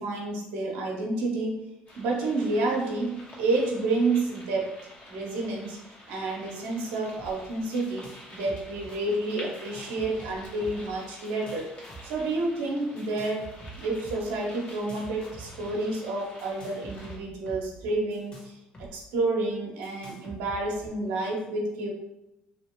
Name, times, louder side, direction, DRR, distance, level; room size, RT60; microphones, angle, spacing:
voice 1, 0.0-1.7 2.0-4.7 5.1-5.8 6.1-8.0 8.3-11.7 12.0-13.4 13.8-18.5 18.9-21.9, right 2 dB, 85° right, -1 dB, 0.8 m, -29 dB
sound 1, 1.9-17.2, left 1 dB, 55° left, 1.1 m, -48 dB
sound 2, 7.2-7.3 7.6-8.2 8.5-9.0 9.5-10.9 11.2-12.2 13.0-14.2 14.7-15.7 16.4-18.9 19.2-19.3 19.8-20.9, right 2 dB, 35° left, 1.1 m, -46 dB
3.0 x 2.5 x 2.9 m, 0.91 s
supercardioid pair, 80°, 3 cm